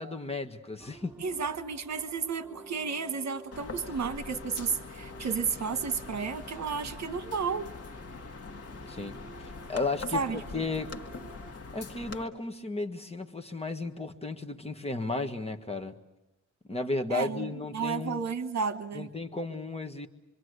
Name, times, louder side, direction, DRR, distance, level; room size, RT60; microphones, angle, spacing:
voice 1, 0.0-1.1 8.9-9.2 9.7-10.2 10.5-10.9 11.7-16.0 16.7-18.2 18.9-20.1, left 3 dB, 20° left, 4 dB, 1.6 m, -34 dB
sound 1, 0.8-11.5, right 3 dB, 5° right, 2.8 m, -52 dB
voice 2, 1.2-7.7 10.1-10.4 17.1-19.1, right 5 dB, 65° right, 10 dB, 1.4 m, -32 dB
sound 2, 3.5-12.2, left 4 dB, 55° left, 1.8 m, -43 dB
26.0 x 25.0 x 8.1 m, 0.92 s
wide cardioid pair, 110°, 29 cm